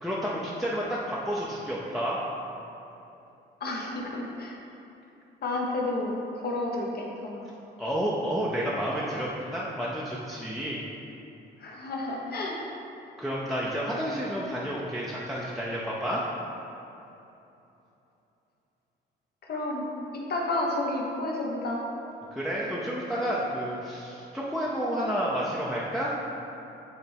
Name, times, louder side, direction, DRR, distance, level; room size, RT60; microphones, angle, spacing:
voice 1, 0.0-2.2 7.8-10.8 13.2-16.2 22.3-26.1, equal, ahead, -6 dB, 0.7 m, -30 dB
voice 2, 3.6-4.6 5.4-7.4 11.6-12.6 19.4-19.9 20.1-21.8, left 2 dB, 50° left, -2 dB, 1.1 m, -31 dB
8.3 x 3.3 x 3.5 m, 3.0 s
cardioid pair, 90°, 20 cm